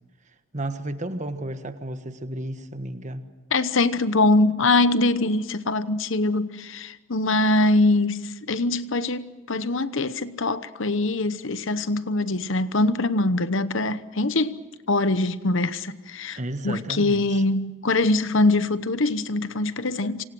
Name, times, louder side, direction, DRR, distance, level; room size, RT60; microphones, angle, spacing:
voice 1, 0.3-3.3 16.3-17.4, right 1 dB, 35° right, 1.4 m, -33 dB
voice 2, 3.5-14.6 14.9-16.4 16.6-20.2, left 2 dB, 60° left, 1.0 m, -23 dB
28.0 x 26.0 x 6.3 m
head